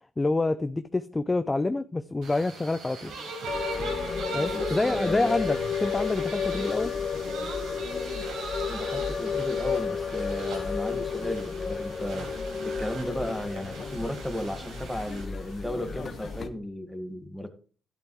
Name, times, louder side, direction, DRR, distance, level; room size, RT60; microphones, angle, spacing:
voice 1, 0.2-3.1 4.3-6.9, left 2 dB, 20° left, 0.5 m, -27 dB
sound 1, 2.2-16.4, right 3 dB, 85° right, 5.3 m, -40 dB
sound 2, 3.5-16.5, left 6 dB, 45° left, 1.2 m, -32 dB
voice 2, 4.5-5.3 8.7-12.3 12.6-17.5, left 1 dB, ahead, 1.9 m, -34 dB
12.0 x 11.0 x 3.2 m
cardioid pair, 90°, 0 cm